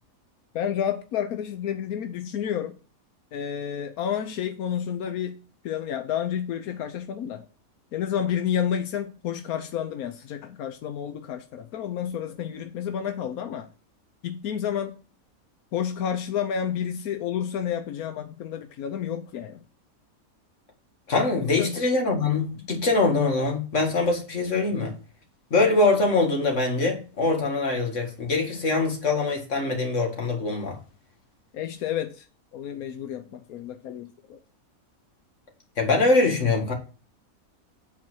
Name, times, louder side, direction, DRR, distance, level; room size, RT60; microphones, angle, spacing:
voice 1, 0.5-2.8 3.3-5.4 5.6-7.5 7.9-13.7 14.2-15.0 15.7-19.6 21.4-21.7 22.6-22.7 31.5-32.3 32.5-34.4, left 9 dB, 90° left, 1.2 m, -30 dB
voice 2, 21.1-24.9 25.5-30.8 35.8-36.7, left 3 dB, 55° left, 2.3 m, -23 dB
8.4 x 4.3 x 6.1 m
omnidirectional pair, 1.5 m